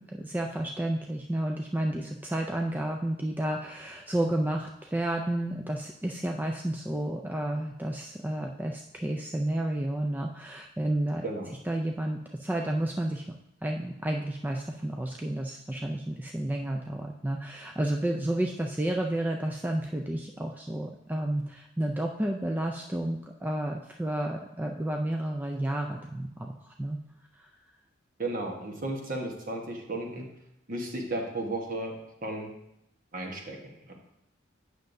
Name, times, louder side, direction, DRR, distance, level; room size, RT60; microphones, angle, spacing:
voice 1, 0.1-11.2 11.6-13.2 13.6-27.0 27.4-27.5, right 1 dB, 10° right, 2 dB, 0.3 m, -31 dB
voice 2, 28.2-30.3 30.7-31.9 32.2-32.5 33.1-33.9, right 2 dB, 45° right, 1 dB, 1.2 m, -34 dB
8.8 x 6.4 x 2.6 m, 0.81 s
head